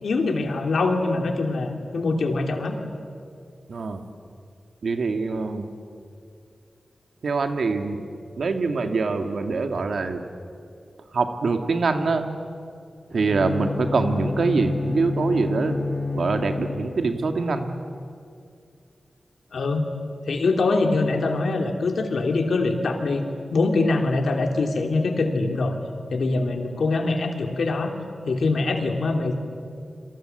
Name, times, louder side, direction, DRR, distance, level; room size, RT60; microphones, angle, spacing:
voice 1, 0.0-2.8 19.5-19.9 20.3-23.3 23.5-25.7 26.1-27.9 28.2-29.4, left 3 dB, 85° left, 4 dB, 2.9 m, -23 dB
voice 2, 3.7-4.0 4.8-5.7 7.2-8.0 8.4-10.2 11.1-12.3 13.1-15.8 16.1-17.7, right 4 dB, 80° right, 6 dB, 2.2 m, -24 dB
Bowed string instrument, 13.1-17.3, left 3 dB, 40° left, 6.2 m, -29 dB
27.0 x 26.0 x 8.0 m, 2.4 s
wide cardioid pair, 90°, 0 cm